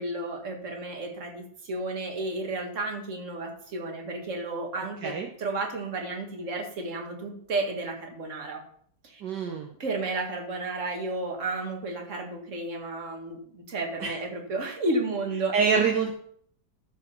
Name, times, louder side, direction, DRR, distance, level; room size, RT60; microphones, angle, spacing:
voice 1, 0.0-8.6 9.0-9.2 9.8-15.8, right 2 dB, 40° right, 2 dB, 2.0 m, -32 dB
voice 2, 4.8-5.3 9.2-9.7 14.0-14.1 15.5-16.1, right 5 dB, 65° right, 2 dB, 1.6 m, -26 dB
13.5 x 5.0 x 5.5 m, 0.62 s
omnidirectional pair, 2.0 m